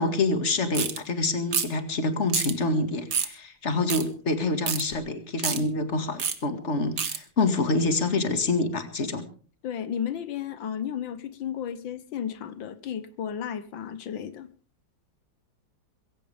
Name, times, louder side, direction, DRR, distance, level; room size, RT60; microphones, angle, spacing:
voice 1, 0.0-9.3, left 2 dB, 35° left, 9 dB, 2.3 m, -26 dB
sound 1, 0.7-1.0 1.5-1.8 2.3-2.5 3.1-3.3 3.9-4.0 4.7-4.8 5.4-5.6 6.2-6.4 7.0-7.2, right 7 dB, 60° right, 2.1 m, -27 dB
voice 2, 9.6-14.5, left 8 dB, 85° left, 13 dB, 1.9 m, -33 dB
22.0 x 16.0 x 3.5 m, 0.40 s
omnidirectional pair, 2.0 m